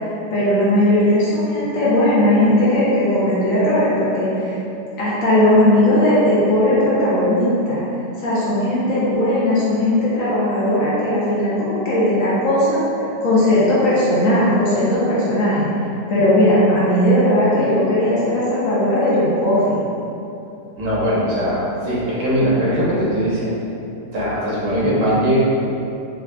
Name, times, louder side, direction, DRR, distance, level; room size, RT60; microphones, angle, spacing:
voice 1, 0.3-4.6 5.0-7.8 8.2-12.8 13.2-15.7 16.1-19.8, left 1 dB, 60° left, -9 dB, 1.0 m, -17 dB
voice 2, 20.8-23.5 24.1-25.4, equal, 80° right, -8 dB, 1.5 m, -20 dB
4.0 x 2.5 x 2.2 m, 2.7 s
omnidirectional pair, 1.8 m